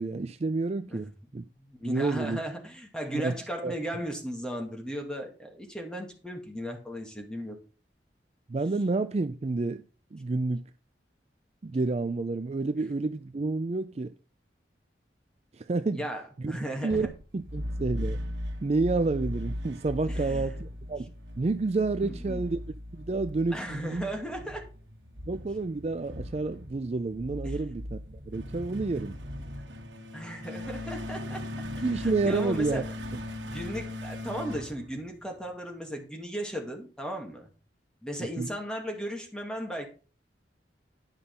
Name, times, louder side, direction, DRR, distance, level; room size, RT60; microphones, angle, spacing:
voice 1, 0.0-1.4 1.8-2.4 3.1-3.4 3.6-3.8 8.5-9.8 10.1-10.6 11.6-14.1 15.5-16.0 16.4-16.6 16.8-17.1 17.3-18.2 18.6-22.6 22.9-24.1 25.3-28.0 28.3-29.2 31.8-32.8 33.1-33.2 38.4-38.5, right 3 dB, 35° right, 0.4 m, -29 dB
voice 2, 1.7-7.6 15.9-17.1 20.1-20.6 22.0-22.4 23.5-24.6 27.4-27.6 30.1-31.5 31.8-32.8 33.4-37.5 38.0-39.9, equal, 5° left, 2.2 m, -36 dB
Bass drum, 16.9-18.3, left 1 dB, 25° left, 2.6 m, -48 dB
sound 1, 17.4-35.5, left 1 dB, 85° right, 1.5 m, -38 dB
10.5 x 5.6 x 5.4 m
head